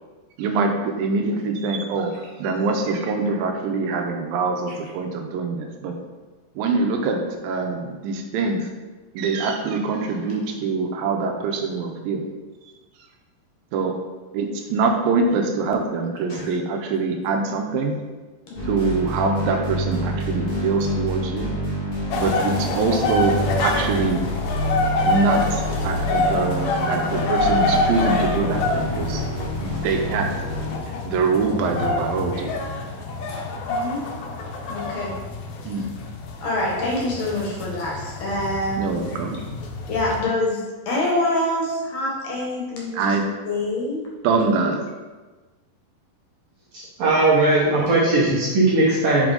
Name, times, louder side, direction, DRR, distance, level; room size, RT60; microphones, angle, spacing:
voice 1, 0.4-6.0 6.6-8.7 9.2-12.2 13.7-14.0 14.3-18.0 18.7-21.5 22.1-24.3 25.0-29.2 29.6-30.3 31.1-32.5 35.7-35.8 38.8-39.4 42.9-43.2 44.2-44.8, right 4 dB, 85° right, 4 dB, 2.4 m, -24 dB
voice 2, 18.5-18.8 32.3-32.5 33.7-34.0 34.7-35.1 35.8-35.9 36.4-39.0 39.9-43.2 43.5-44.1, left 1 dB, 65° left, -3 dB, 1.8 m, -26 dB
sound 1, 18.5-30.8, equal, 35° left, 0.8 m, -27 dB
sound 2, 22.1-40.2, left 2 dB, 80° left, 1.6 m, -27 dB
voice 3, 46.7-49.3, right 2 dB, 60° right, -7 dB, 1.8 m, -19 dB
5.2 x 4.8 x 3.8 m, 1.3 s
omnidirectional pair, 4.1 m